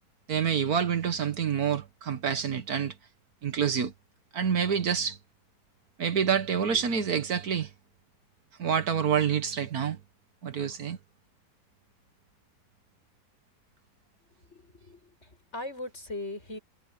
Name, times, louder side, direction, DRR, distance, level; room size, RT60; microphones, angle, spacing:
voice 1, 0.3-2.9 3.4-3.9 4.3-5.2 6.0-7.7 8.6-10.0 10.4-11.0, right 7 dB, 65° right, 1.7 m, -27 dB
voice 2, 14.5-16.6, left 2 dB, 40° left, 8.4 m, -39 dB
omnidirectional pair, 1.8 m